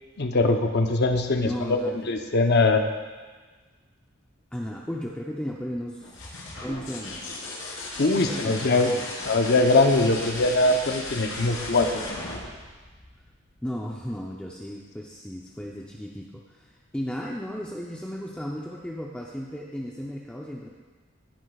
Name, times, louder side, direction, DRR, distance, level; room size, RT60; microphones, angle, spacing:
voice 1, 0.2-1.8 2.1-2.9 8.0-8.9 9.2-12.0, left 2 dB, 55° left, 5 dB, 0.8 m, -22 dB
voice 2, 1.4-2.1 4.5-6.3 6.6-7.4 8.0-9.2 13.6-20.7, equal, 5° left, -2 dB, 0.6 m, -35 dB
sound 1, 6.0-13.6 15.4-15.9, left 2 dB, 75° left, 3.3 m, -36 dB
16.5 x 9.3 x 2.4 m, 1.4 s
head